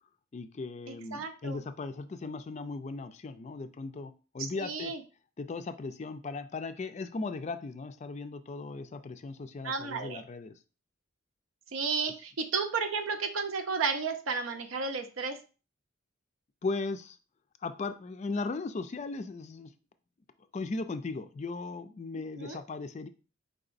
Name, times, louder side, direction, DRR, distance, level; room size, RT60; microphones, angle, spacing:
voice 1, 0.3-4.9 5.4-10.5 16.6-17.2 17.6-19.7 20.5-23.1, left 3 dB, 35° left, 9 dB, 0.3 m, -37 dB
voice 2, 0.9-1.6 4.6-5.0 9.6-10.2 11.7-15.4 22.4-22.6, right 4 dB, 85° right, 6 dB, 0.6 m, -33 dB
4.7 x 3.9 x 2.5 m, 0.34 s
head